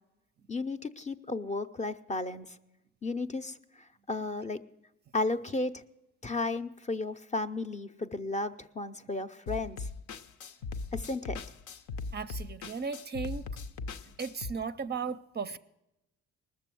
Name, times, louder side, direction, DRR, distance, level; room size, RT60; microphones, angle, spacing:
voice 1, 0.5-2.6 3.0-3.6 4.1-4.6 5.1-5.8 6.2-9.9 10.9-11.4, left 2 dB, 25° left, 10 dB, 0.6 m, -33 dB
sound 1, 9.5-14.5, left 4 dB, 75° left, 0.7 m, -39 dB
voice 2, 12.1-13.5 14.0-15.6, right 5 dB, 35° right, 11 dB, 0.5 m, -36 dB
19.5 x 6.9 x 7.6 m, 0.94 s
cardioid pair, 90°, 30 cm